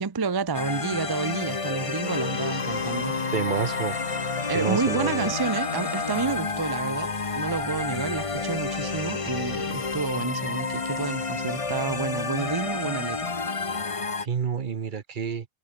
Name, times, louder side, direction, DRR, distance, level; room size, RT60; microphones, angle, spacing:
voice 1, 0.0-3.2 4.5-13.3, right 5 dB, 25° right, 0.5 m, -30 dB
sound 1, 0.5-14.3, left 4 dB, 30° left, 1.1 m, -30 dB
Wind instrument woodwind instrument, 2.0-6.4, left 5 dB, 65° left, 2.0 m, -35 dB
voice 2, 3.3-4.0 4.5-5.3 14.2-15.5, right 6 dB, 50° right, 1.0 m, -28 dB
omnidirectional pair, 1.2 m